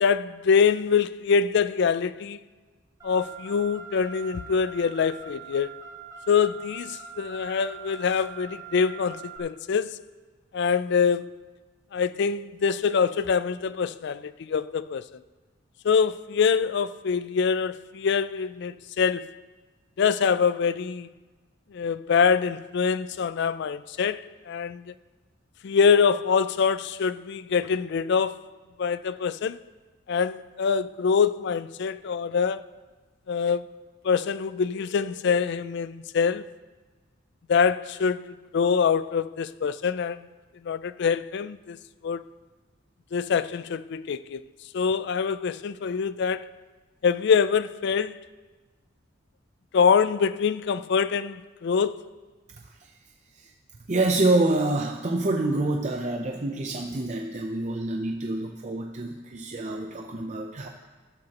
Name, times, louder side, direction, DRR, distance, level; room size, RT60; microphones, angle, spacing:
voice 1, 0.0-2.4 3.0-5.7 6.3-9.9 10.5-11.3 11.9-15.2 15.8-19.3 20.0-21.1 21.7-24.9 25.6-28.4 28.8-29.6 30.1-32.6 33.3-33.7 34.0-36.5 37.5-40.3 40.6-41.8 42.0-42.2 43.1-44.5 44.7-46.5 47.0-48.2 49.7-52.0, left 6 dB, 60° left, 0.4 m, -24 dB
Car, 3.0-9.4, right 6 dB, 15° right, 1.4 m, -43 dB
voice 2, 53.9-60.7, right 2 dB, 40° right, 0.6 m, -27 dB
13.5 x 13.0 x 2.9 m
head